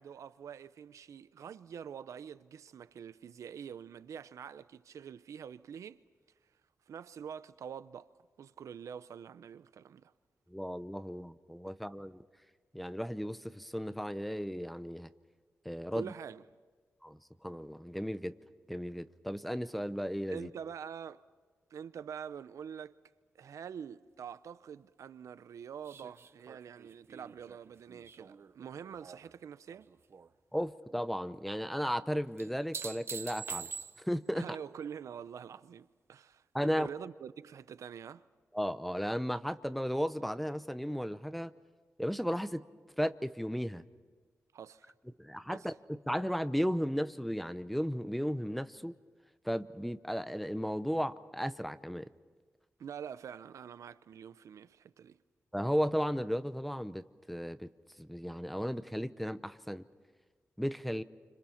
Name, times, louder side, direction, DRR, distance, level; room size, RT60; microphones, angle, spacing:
voice 1, 0.0-6.0 6.9-8.1 8.4-10.1 15.9-16.4 20.3-21.2 21.7-23.0 23.3-29.9 34.3-38.2 44.5-44.9 45.5-45.7 52.8-55.2, right 8 dB, 80° right, 0.6 m, -46 dB
voice 2, 10.5-12.2 12.7-15.1 15.6-16.1 17.0-18.3 18.7-20.5 30.5-33.7 34.0-34.4 36.5-36.9 38.5-41.5 42.0-42.7 43.0-43.8 45.2-48.9 49.4-52.1 55.5-57.7 58.0-59.8 60.6-61.0, equal, ahead, 0.8 m, -35 dB
sound 1, 25.9-29.3 29.7-30.3 32.4-34.3 36.9-37.0, right 6 dB, 55° right, 0.8 m, -45 dB
29.5 x 26.0 x 5.8 m
wide cardioid pair, 115°, 5 cm